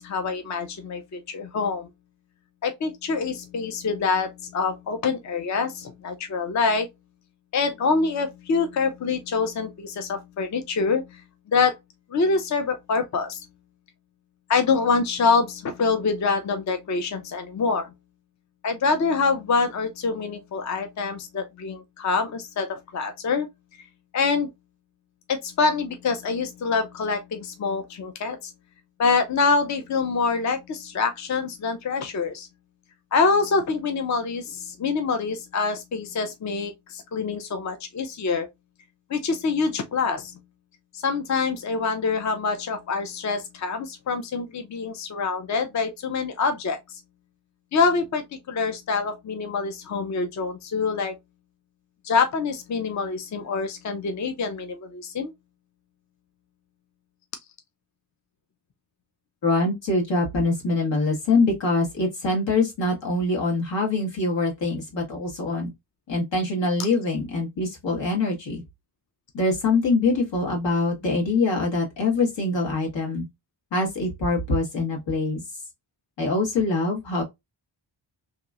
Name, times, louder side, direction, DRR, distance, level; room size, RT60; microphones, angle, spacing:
voice 1, 0.0-1.9 2.6-6.9 7.5-11.2 11.5-11.8 12.1-13.4 14.5-17.9 18.6-23.5 23.8-23.9 24.1-24.5 25.3-28.5 29.0-32.5 33.1-38.5 39.1-40.4 40.9-47.0 47.7-51.2 52.0-55.3, left 4 dB, 40° left, 0.5 m, -25 dB
voice 2, 59.4-65.7 66.1-68.6 69.3-73.2 73.7-75.4 76.2-77.2, left 3 dB, 80° left, 1.6 m, -24 dB
3.0 x 2.9 x 2.3 m
wide cardioid pair, 180°, 43 cm